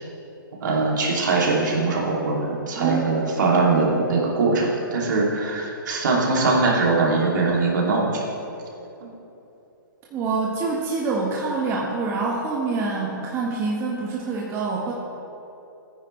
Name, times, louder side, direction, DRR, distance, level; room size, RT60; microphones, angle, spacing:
voice 1, 0.6-8.2, right 3 dB, 60° right, -3 dB, 2.6 m, -21 dB
voice 2, 2.8-3.2 10.1-14.9, right 3 dB, 25° right, -3 dB, 1.2 m, -26 dB
15.0 x 9.6 x 3.2 m, 3.0 s
hypercardioid pair, 130°, 11 cm